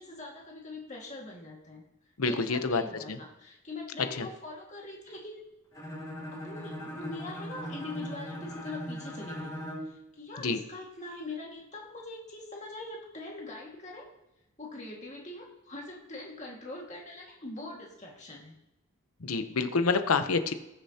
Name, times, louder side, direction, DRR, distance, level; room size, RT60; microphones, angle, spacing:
voice 1, 0.0-1.8 2.2-5.4 6.3-9.5 9.9-14.1 14.6-18.6, left 2 dB, 35° left, -2 dB, 1.9 m, -43 dB
voice 2, 2.2-2.8 3.1-3.2 4.2-4.3 10.4-10.6 19.2-20.5, left 4 dB, 85° left, 9 dB, 0.8 m, -27 dB
Bowed string instrument, 5.7-10.0, equal, 15° left, 2.2 m, -39 dB
19.5 x 6.7 x 2.9 m, 0.92 s
head